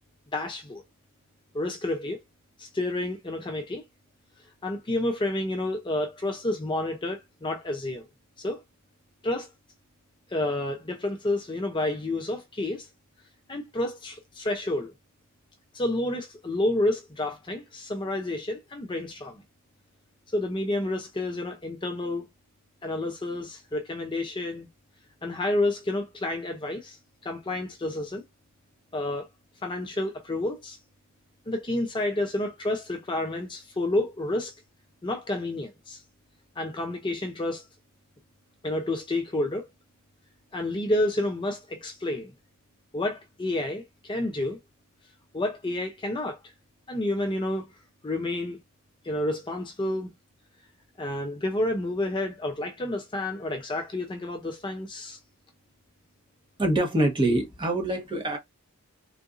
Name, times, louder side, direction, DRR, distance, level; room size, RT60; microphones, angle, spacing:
voice 1, 0.3-0.8 1.5-2.2 2.6-3.8 4.6-8.0 8.4-8.6 9.2-9.5 10.3-12.9 13.5-14.9 15.7-19.4 20.3-22.3 22.8-24.7 25.2-27.0 27.2-28.2 28.9-29.3 29.6-30.8 31.5-34.5 35.0-36.0 36.6-37.6 38.6-39.7 40.5-42.3 42.9-44.6 45.3-46.4 46.9-47.7 48.0-48.6 49.0-50.1 51.0-55.2, left 1 dB, 20° left, 0.5 m, -29 dB
voice 2, 56.6-58.4, right 1 dB, 20° right, 1.0 m, -25 dB
3.8 x 2.5 x 2.4 m
head